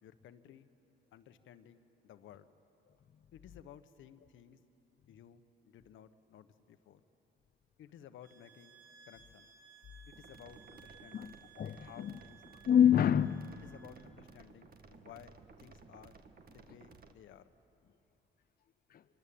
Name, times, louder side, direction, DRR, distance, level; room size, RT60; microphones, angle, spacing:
voice 1, 0.0-0.7 1.1-2.5 3.3-4.6 5.1-7.0 7.8-8.8 9.1-9.5 10.1-11.4 11.9-12.4 13.0-13.1 13.6-16.2 16.5-17.5, left 10 dB, 75° left, 11 dB, 1.2 m, -56 dB
sound 1, 8.2-14.1, right 7 dB, 70° right, 2.6 m, -60 dB
sound 2, 10.1-17.1, right 4 dB, 50° right, 1.9 m, -57 dB
voice 2, 11.1-12.2 12.7-13.5 18.9-19.0, left 9 dB, 50° left, 10 dB, 0.7 m, -27 dB
25.5 x 24.0 x 8.7 m, 2.9 s
cardioid pair, 90°, 20 cm